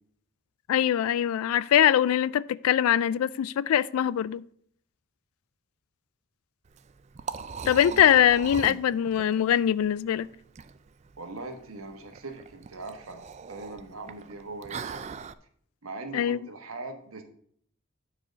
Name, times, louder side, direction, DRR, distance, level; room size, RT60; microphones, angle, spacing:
voice 1, 0.7-4.4 7.7-10.3 16.1-16.4, left 10 dB, 85° left, 0.3 m, -22 dB
Liquid, 6.7-15.3, right 5 dB, 30° right, 0.3 m, -40 dB
voice 2, 11.2-15.1 15.8-17.2, right 3 dB, 85° right, 1.3 m, -41 dB
8.9 x 4.8 x 5.1 m
head